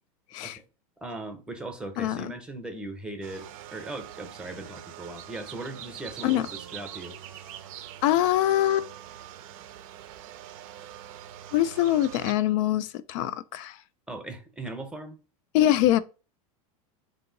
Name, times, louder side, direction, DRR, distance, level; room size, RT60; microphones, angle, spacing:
voice 1, 1.0-7.2 14.1-15.2, right 2 dB, 5° right, 0.7 m, -38 dB
voice 2, 2.0-2.3 6.2-6.5 8.0-8.9 11.5-13.8 15.5-16.0, left 13 dB, 60° left, 0.4 m, -24 dB
sound 1, 3.2-12.3, right 11 dB, 65° right, 0.5 m, -44 dB
3.7 x 2.7 x 3.8 m
supercardioid pair, 115°, 19 cm